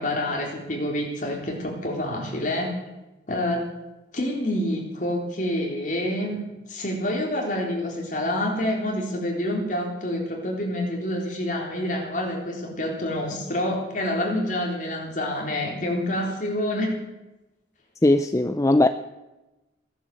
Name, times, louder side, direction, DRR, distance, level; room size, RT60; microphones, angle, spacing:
voice 1, 0.0-2.8 3.3-3.7 4.1-17.0 18.3-18.4, left 1 dB, 45° left, 0 dB, 3.9 m, -27 dB
voice 2, 18.0-18.9, left 1 dB, 15° left, 10 dB, 0.4 m, -19 dB
16.5 x 11.0 x 7.8 m, 1.0 s
head